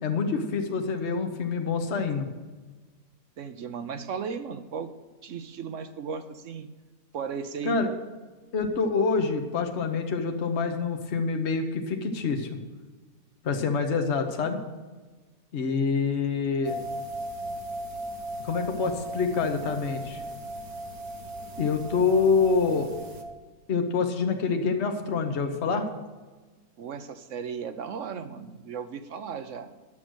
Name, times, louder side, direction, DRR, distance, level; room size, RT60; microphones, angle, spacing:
voice 1, 0.0-2.3 7.6-7.9 8.5-12.6 13.4-14.7 15.5-16.8 18.4-20.2 21.6-23.0 23.7-25.9, left 5 dB, 50° left, 5 dB, 1.3 m, -26 dB
voice 2, 3.4-4.9 5.2-6.7 7.1-7.8 26.8-29.7, right 6 dB, 60° right, 10 dB, 1.1 m, -36 dB
sound 1, 16.6-23.2, right 1 dB, 90° right, 1.7 m, -37 dB
11.0 x 7.8 x 6.3 m, 1.3 s
omnidirectional pair, 1.5 m